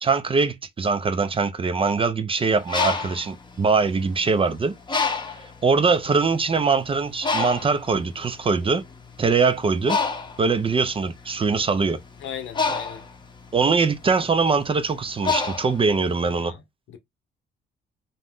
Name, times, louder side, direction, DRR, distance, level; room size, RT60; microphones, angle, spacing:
voice 1, 0.0-5.2 5.6-8.8 9.2-10.0 10.4-12.0 13.5-16.5, right 4 dB, 25° right, 0.4 m, -22 dB
Bird, 2.5-4.3 4.9-5.6 6.2-6.4 6.6-16.4, left 4 dB, 25° left, 0.7 m, -28 dB
voice 2, 12.2-13.0 16.2-16.6 16.9-17.0, left 9 dB, 75° left, 0.8 m, -37 dB
2.6 x 2.1 x 3.4 m
cardioid pair, 90°, 20 cm